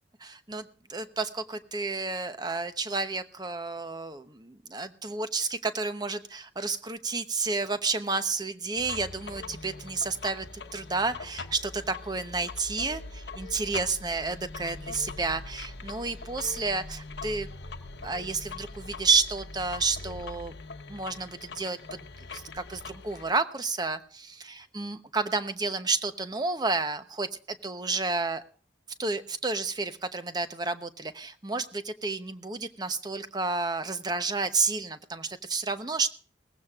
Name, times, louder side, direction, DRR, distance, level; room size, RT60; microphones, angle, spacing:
voice 1, 0.2-10.5 10.7-17.5 18.0-20.5 20.9-27.3 27.6-28.4 29.0-36.1, right 4 dB, 25° right, 10 dB, 0.9 m, -31 dB
sound 1, 8.7-23.3, left 3 dB, 75° left, 1.0 m, -42 dB
20.0 x 15.5 x 2.4 m, 0.43 s
head